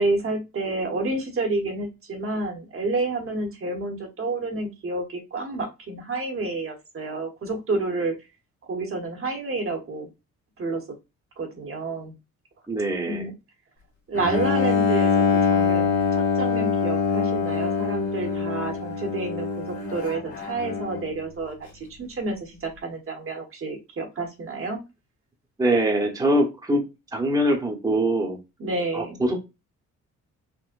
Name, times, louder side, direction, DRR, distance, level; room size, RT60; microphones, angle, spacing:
voice 1, 0.0-8.1 8.7-10.1 10.6-10.8 11.4-12.2 13.1-13.3 14.1-15.9 16.1-24.8 28.6-29.2, right 3 dB, 45° right, 3 dB, 1.0 m, -29 dB
voice 2, 12.7-13.3 25.6-26.8 27.1-28.4 28.9-29.4, right 1 dB, 10° right, 1 dB, 0.8 m, -23 dB
Bowed string instrument, 14.1-21.2, left 5 dB, 50° left, 1.2 m, -24 dB
3.7 x 2.1 x 2.5 m, 0.25 s
cardioid pair, 90°, 30 cm